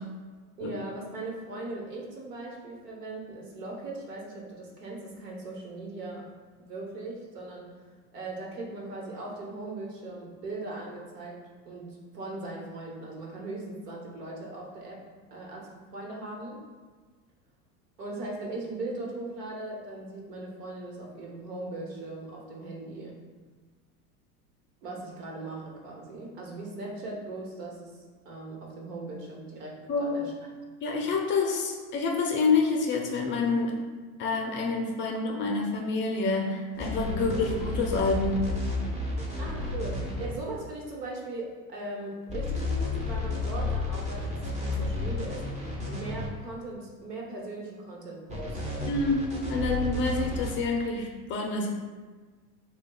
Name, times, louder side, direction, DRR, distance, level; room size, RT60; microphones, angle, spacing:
voice 1, 0.6-6.3 6.6-7.7 8.1-11.4 11.7-15.0 15.3-16.6 18.0-23.2 24.8-28.0 28.2-30.3 37.3-37.4 39.4-45.5 45.8-48.9, right 2 dB, 85° right, -2 dB, 1.1 m, -39 dB
voice 2, 29.9-30.3 30.8-33.7 34.2-38.4 48.8-51.7, left 3 dB, 25° left, 1 dB, 0.4 m, -27 dB
sound 1, 36.7-40.3 42.3-46.3 48.3-50.6, left 2 dB, 15° right, 0.7 m, -32 dB
6.3 x 2.3 x 2.2 m, 1.4 s
hypercardioid pair, 110°, 46 cm